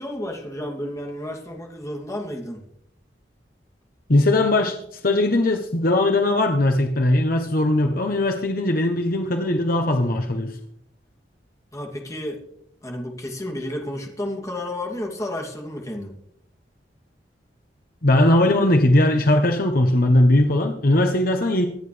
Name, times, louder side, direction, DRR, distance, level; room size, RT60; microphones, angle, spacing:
voice 1, 0.0-2.6 11.7-12.4 12.8-16.1, left 1 dB, 20° left, 0 dB, 2.7 m, -31 dB
voice 2, 4.1-10.6 18.0-21.7, left 1 dB, 55° left, 4 dB, 1.1 m, -19 dB
25.0 x 9.2 x 3.4 m, 0.73 s
head